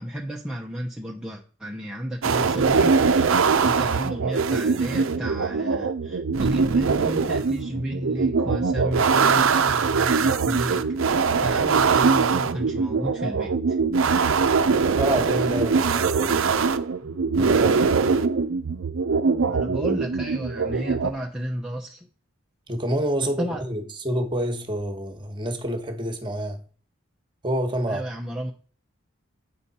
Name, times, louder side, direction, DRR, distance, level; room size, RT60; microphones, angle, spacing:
voice 1, 0.0-13.8 19.5-22.1 23.4-23.6 27.9-28.5, equal, 5° right, 0.6 m, -33 dB
Machinery BM, 2.2-21.1, right 5 dB, 75° right, 0.6 m, -22 dB
voice 2, 14.9-16.6 17.3-17.9 22.7-26.6 27.4-28.0, right 1 dB, 25° right, 1.2 m, -28 dB
8.3 x 5.2 x 4.1 m
head